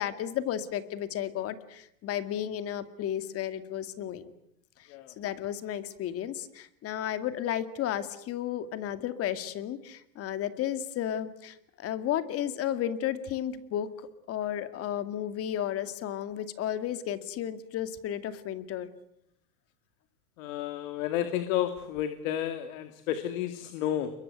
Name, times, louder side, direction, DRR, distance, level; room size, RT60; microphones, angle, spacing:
voice 1, 0.0-4.3 4.8-4.9 5.2-13.9 14.3-18.9, left 10 dB, 30° left, 11 dB, 2.3 m, -33 dB
voice 2, 20.4-24.1, left 11 dB, 55° left, 9 dB, 2.6 m, -31 dB
29.5 x 23.0 x 8.1 m, 0.76 s
supercardioid pair, 140°, 47 cm